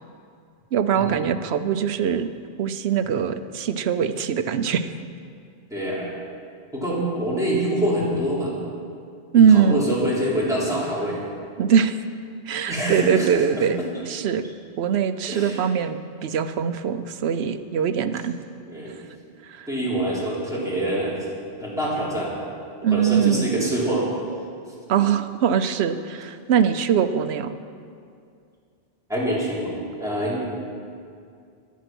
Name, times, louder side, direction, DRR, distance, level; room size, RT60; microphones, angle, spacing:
voice 1, 0.7-2.3 2.6-4.9 9.3-9.8 11.6-12.0 12.5-13.8 14.1-14.4 14.8-18.3 19.4-19.7 22.8-23.5 24.9-27.5, right 8 dB, 75° right, 10 dB, 0.9 m, -22 dB
voice 2, 5.7-6.1 6.7-8.5 9.3-11.2 12.7-13.3 13.6-13.7 15.3-15.6 18.7-18.9 19.7-21.2 21.6-22.3 22.9-24.1 29.1-30.5, right 1 dB, 5° right, -8 dB, 3.6 m, -25 dB
14.5 x 10.5 x 6.1 m, 2.3 s
omnidirectional pair, 1.1 m